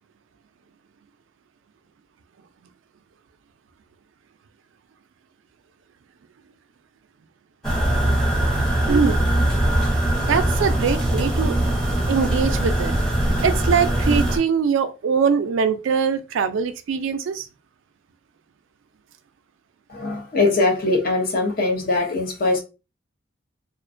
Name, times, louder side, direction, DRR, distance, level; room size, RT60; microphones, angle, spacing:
sound 1, 7.6-14.4, right 1 dB, ahead, 0.7 m, -21 dB
voice 1, 8.9-9.2 10.2-11.6 12.1-12.9 13.4-17.5, right 6 dB, 85° right, 0.3 m, -22 dB
voice 2, 19.9-22.6, left 2 dB, 50° left, 0.6 m, -21 dB
2.4 x 2.1 x 2.4 m
head